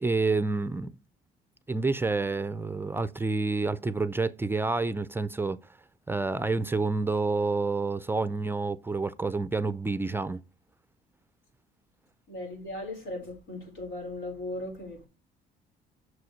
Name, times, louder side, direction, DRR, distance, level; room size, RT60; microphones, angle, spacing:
voice 1, 0.0-1.0 1.7-5.6 6.1-10.4, right 3 dB, 15° right, 0.4 m, -28 dB
voice 2, 12.3-15.1, left 2 dB, 85° left, 4.8 m, -37 dB
6.3 x 4.8 x 5.2 m
cardioid pair, 110°, 17 cm